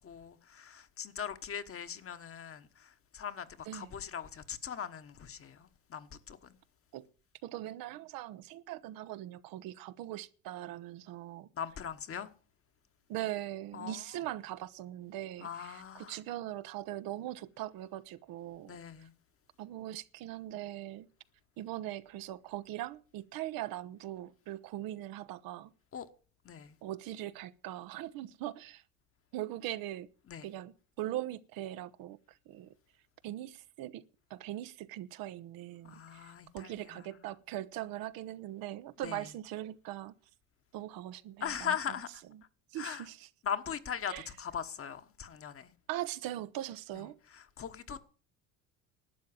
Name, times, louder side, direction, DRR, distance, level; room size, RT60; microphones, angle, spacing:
voice 1, 0.0-6.6 11.5-12.3 13.7-14.0 15.4-16.2 18.7-19.1 25.9-26.1 26.4-26.7 30.3-30.5 35.8-37.1 39.0-39.3 41.4-42.1 42.7-43.1 43.4-45.7 47.3-48.0, left 8 dB, 35° left, 1.3 m, -40 dB
voice 2, 7.4-11.5 13.1-19.1 19.6-21.1 21.6-25.7 26.8-28.8 29.3-30.1 30.4-32.7 33.2-34.0 34.3-40.1 40.7-41.8 42.7-43.3 44.1-44.3 45.9-47.2, right 14 dB, 60° right, 0.9 m, -41 dB
12.0 x 7.6 x 8.7 m
supercardioid pair, 95°, 39 cm